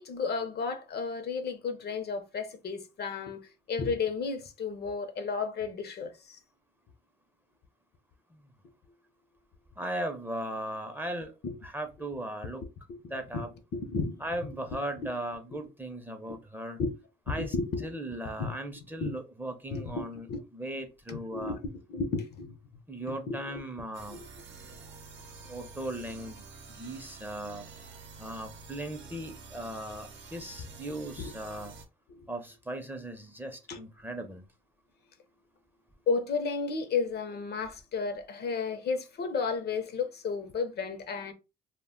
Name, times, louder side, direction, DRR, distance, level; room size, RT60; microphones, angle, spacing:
voice 1, 0.0-3.4 3.7-6.4 11.4-11.5 13.3-13.4 13.7-14.2 16.8-16.9 17.3-17.9 18.4-18.5 19.0-19.1 19.7-20.4 21.1-21.6 21.9-22.5 23.1-23.6 30.9-31.3 32.1-32.2 33.7-33.8 36.1-41.3, left 4 dB, 55° left, 0.6 m, -33 dB
voice 2, 9.8-11.4 11.6-12.6 13.1-13.5 14.2-16.8 17.3-17.5 17.8-20.3 20.5-21.6 22.9-24.2 25.4-26.4 26.7-27.7 28.2-31.7 32.3-34.4, right 1 dB, 10° right, 0.5 m, -38 dB
sound 1, 23.9-31.8, right 4 dB, 70° right, 0.7 m, -48 dB
2.1 x 2.0 x 3.6 m
cardioid pair, 90°, 20 cm